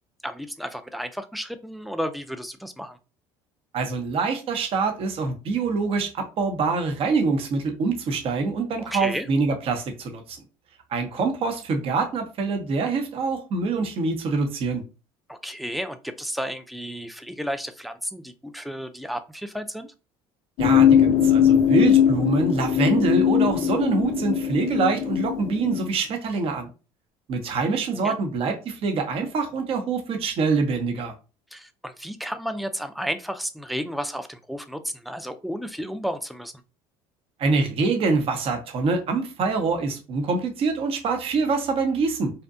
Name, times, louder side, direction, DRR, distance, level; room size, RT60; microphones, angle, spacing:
voice 1, 0.2-3.0 8.8-9.3 15.3-19.9 28.0-28.1 31.5-36.5, equal, ahead, 0.3 m, -32 dB
voice 2, 3.7-10.4 10.9-14.8 20.6-26.7 27.3-31.1 37.4-42.3, right 4 dB, 45° right, 0.7 m, -25 dB
sound 1, 20.6-25.9, left 9 dB, 55° left, 0.5 m, -20 dB
2.6 x 2.1 x 2.5 m
supercardioid pair, 90°, 13 cm